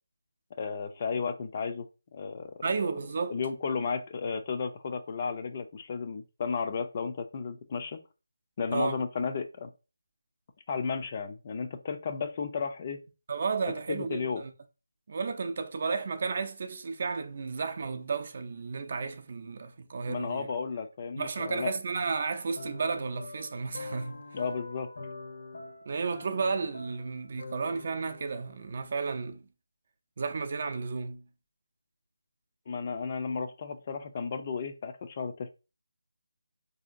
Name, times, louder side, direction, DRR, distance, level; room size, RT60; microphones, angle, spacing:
voice 1, 0.6-1.9 2.1-2.9 3.3-8.0 8.6-9.7 10.7-13.0 13.9-14.4 20.1-21.7 24.3-24.9 32.7-35.5, left 5 dB, 35° left, 0.4 m, -33 dB
voice 2, 2.6-3.4 8.7-9.0 13.3-14.5 15.1-20.5 21.2-24.2 25.9-29.4 30.2-31.2, right 4 dB, 45° right, 0.5 m, -33 dB
sound 1, 22.6-28.9, left 3 dB, 65° left, 0.8 m, -45 dB
4.2 x 2.7 x 2.5 m
figure-of-eight pair, 160°, 0 cm